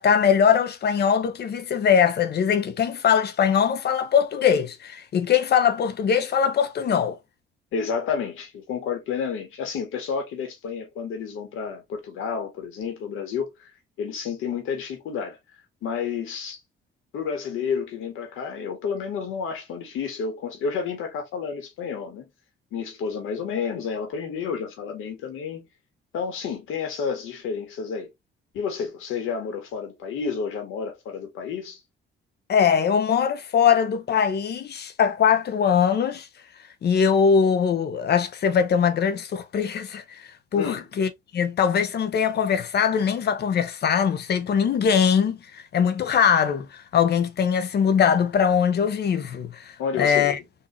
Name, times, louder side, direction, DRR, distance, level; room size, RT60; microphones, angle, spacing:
voice 1, 0.0-7.2 32.5-36.3 36.8-50.4, left 7 dB, 55° left, 0.8 m, -21 dB
voice 2, 7.7-13.7 14.0-15.4 15.8-16.6 17.1-22.2 22.7-25.7 26.1-28.1 28.5-31.8 40.5-40.8 49.8-50.4, left 6 dB, 90° left, 1.5 m, -30 dB
3.9 x 2.7 x 2.8 m
cardioid pair, 90°, 20 cm